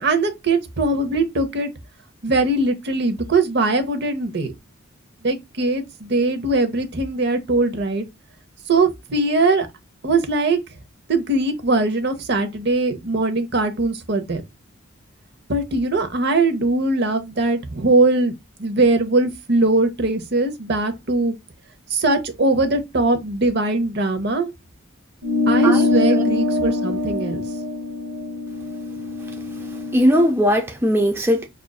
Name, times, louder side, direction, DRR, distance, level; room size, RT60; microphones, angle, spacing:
voice 1, 0.0-1.7 2.2-4.5 5.2-8.0 8.7-9.7 10.0-10.6 11.1-14.4 15.5-18.3 18.6-21.3 21.9-24.5 25.5-27.4, right 2 dB, 55° right, 0.8 m, -21 dB
sound 1, 25.2-30.0, left 3 dB, 90° right, 0.9 m, -23 dB
voice 2, 25.6-26.2 29.9-31.5, equal, 10° right, 0.4 m, -19 dB
6.0 x 2.5 x 2.3 m
head